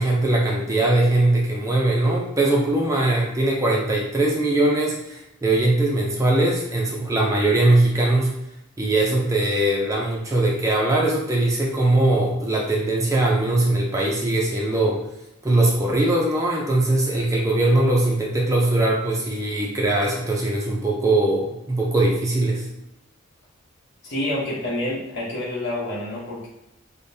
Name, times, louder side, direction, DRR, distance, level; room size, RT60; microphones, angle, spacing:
voice 1, 0.0-8.3 8.8-15.0 15.4-22.7, right 2 dB, 15° right, -2 dB, 0.4 m, -21 dB
voice 2, 24.0-26.5, left 1 dB, 50° left, -7 dB, 1.0 m, -28 dB
4.9 x 2.1 x 2.7 m, 0.87 s
head